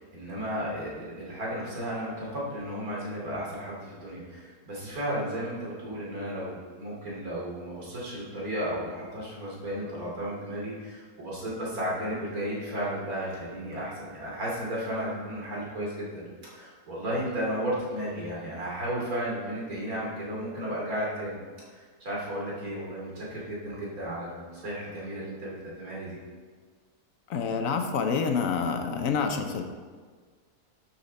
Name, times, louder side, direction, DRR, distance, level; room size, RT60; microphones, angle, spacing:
voice 1, 0.0-21.4 22.0-26.2, equal, 60° right, -5 dB, 3.2 m, -34 dB
voice 2, 27.3-29.6, left 5 dB, 60° left, 6 dB, 1.1 m, -27 dB
11.5 x 5.9 x 4.1 m, 1.5 s
omnidirectional pair, 1.7 m